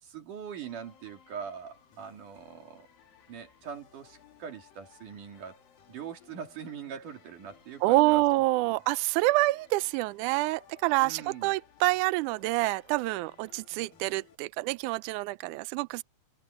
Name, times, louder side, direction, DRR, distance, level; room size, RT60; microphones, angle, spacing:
voice 1, 0.0-2.9 3.3-5.6 5.9-8.2 8.7-8.8 11.0-11.5, right 7 dB, 60° right, 4.3 m, -42 dB
sound 1, 0.6-14.4, left 8 dB, 75° left, 4.5 m, -60 dB
voice 2, 7.8-16.0, right 20 dB, 85° right, 1.8 m, -27 dB
omnidirectional pair, 4.1 m